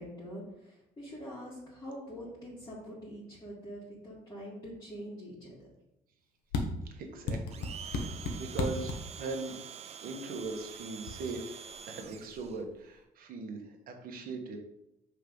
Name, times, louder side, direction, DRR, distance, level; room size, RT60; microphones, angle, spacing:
voice 1, 0.0-5.7, equal, 20° left, -8 dB, 1.8 m, -44 dB
sound 1, 6.5-6.7 7.3-9.0 10.4-10.7 11.1-11.2 11.5-12.7, left 3 dB, 85° left, 1.0 m, -35 dB
voice 2, 6.9-9.5 10.0-14.6, right 3 dB, 60° right, 3 dB, 1.2 m, -40 dB
Domestic sounds home sounds, 7.5-12.6, right 7 dB, 40° right, 0.4 m, -46 dB
5.5 x 3.5 x 5.2 m, 0.85 s
cardioid pair, 110°, 17 cm